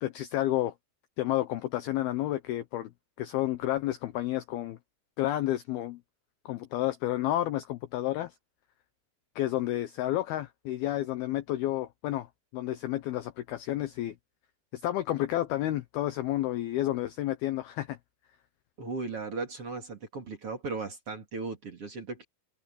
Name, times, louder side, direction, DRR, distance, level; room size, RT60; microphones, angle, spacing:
voice 1, 0.0-0.7 1.2-2.9 3.2-4.8 5.2-6.0 6.5-8.3 9.4-12.3 12.5-14.2 14.7-18.0, left 14 dB, 80° left, 2.3 m, -30 dB
voice 2, 18.8-22.2, right 3 dB, 35° right, 3.0 m, -37 dB
open air
omnidirectional pair, 5.4 m